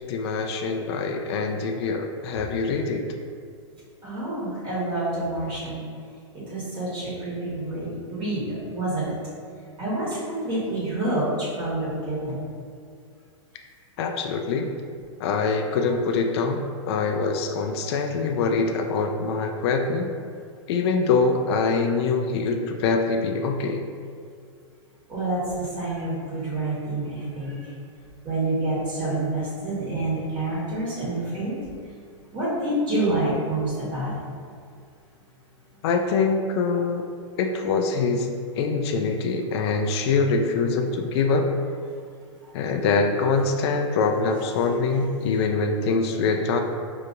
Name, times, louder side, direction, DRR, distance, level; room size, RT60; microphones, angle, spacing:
voice 1, 0.1-3.0 14.0-14.7 15.2-20.1 20.7-23.8 35.8-37.0 37.4-38.3 38.6-41.5 42.5-46.6, left 4 dB, 55° left, 4 dB, 0.4 m, -24 dB
voice 2, 4.0-5.9 6.3-9.1 9.8-12.3 25.1-27.7 28.2-31.5 32.3-34.2 44.6-44.7, right 2 dB, 30° right, -9 dB, 1.4 m, -28 dB
5.1 x 2.8 x 2.5 m, 2.2 s
hypercardioid pair, 125°, 16 cm